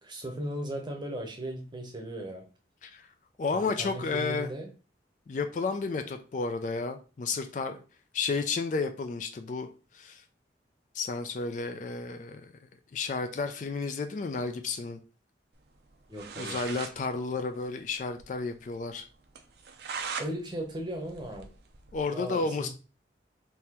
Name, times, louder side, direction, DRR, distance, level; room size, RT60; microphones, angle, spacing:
voice 1, 0.0-2.4 3.6-4.7 16.1-16.6 20.2-21.5 22.1-22.7, right 1 dB, 25° right, 3 dB, 0.8 m, -37 dB
voice 2, 3.4-4.5 5.3-7.8 8.1-9.7 9.9-10.2 10.9-12.5 12.9-15.0 16.4-19.1 21.9-22.7, left 4 dB, 40° left, 7 dB, 0.3 m, -32 dB
sound 1, 15.9-16.0 16.1-17.0 17.3-17.4 17.6-17.7 18.1-18.2 18.6-18.7 19.4-20.3 20.7-22.0, right 5 dB, 60° right, 0.5 m, -39 dB
3.7 x 2.8 x 2.9 m, 0.35 s
head